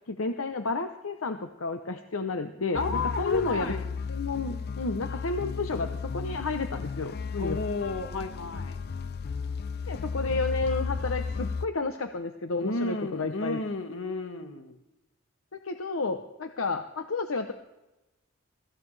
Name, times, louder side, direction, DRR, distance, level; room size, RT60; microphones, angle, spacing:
voice 1, 0.1-3.7 4.1-7.6 9.9-13.6 15.6-17.5, left 3 dB, 90° left, 7 dB, 0.8 m, -31 dB
voice 2, 2.7-3.9 7.4-8.8 12.6-14.8, left 3 dB, 70° left, 6 dB, 1.6 m, -32 dB
sound 1, 2.7-11.7, left 5 dB, 50° left, 0.5 m, -34 dB
23.5 x 14.5 x 3.3 m, 1.0 s
head